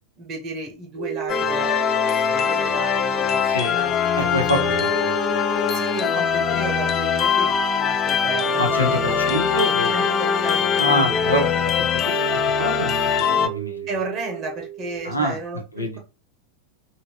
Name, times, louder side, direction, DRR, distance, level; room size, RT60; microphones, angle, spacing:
voice 1, 0.2-1.8 2.2-3.9 5.7-9.2 9.9-10.9 13.9-16.0, right 3 dB, 35° right, 2 dB, 0.8 m, -33 dB
sound 1, 1.0-15.2, right 11 dB, 65° left, 1.1 m, -33 dB
sound 2, 1.3-13.5, left 8 dB, 30° left, 0.4 m, -22 dB
voice 2, 4.2-5.8 8.6-9.9 10.8-12.3 12.6-13.1 13.4-13.9 15.0-15.3 15.8-16.0, equal, 85° left, 3 dB, 0.8 m, -26 dB
2.9 x 2.6 x 2.9 m, 0.31 s
figure-of-eight pair, 90°, 0 cm